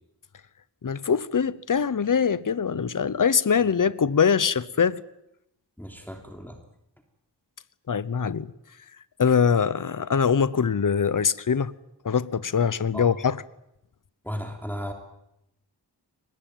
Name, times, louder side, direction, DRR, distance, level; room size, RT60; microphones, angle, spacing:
voice 1, 0.8-5.0 7.9-8.5 9.2-11.7 12.0-13.4, left 6 dB, 45° left, 0.9 m, -23 dB
voice 2, 5.8-6.6 12.9-13.1 14.2-14.9, equal, 5° left, 3.2 m, -35 dB
23.0 x 20.5 x 9.2 m
wide cardioid pair, 75°, 43 cm